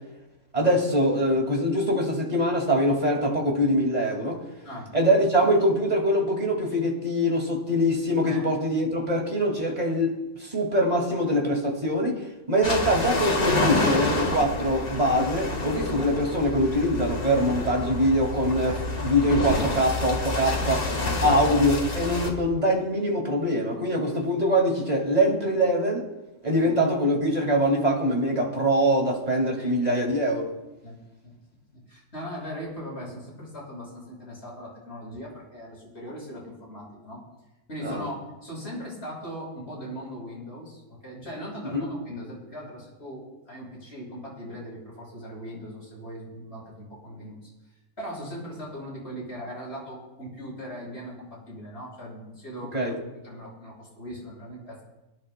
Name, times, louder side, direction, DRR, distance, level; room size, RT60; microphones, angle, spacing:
voice 1, 0.5-4.4 4.9-10.1 10.4-20.9 21.2-26.1 26.4-30.5 37.8-38.1 41.7-41.9 52.7-53.0, equal, 25° right, 0 dB, 2.3 m, -23 dB
sound 1, 12.6-22.3, left 2 dB, 75° left, 2.3 m, -28 dB
voice 2, 31.7-37.2 37.7-38.2 38.4-47.4 48.0-53.0 53.2-54.8, equal, 45° left, -5 dB, 6.3 m, -39 dB
27.5 x 11.0 x 2.2 m, 1.0 s
omnidirectional pair, 1.5 m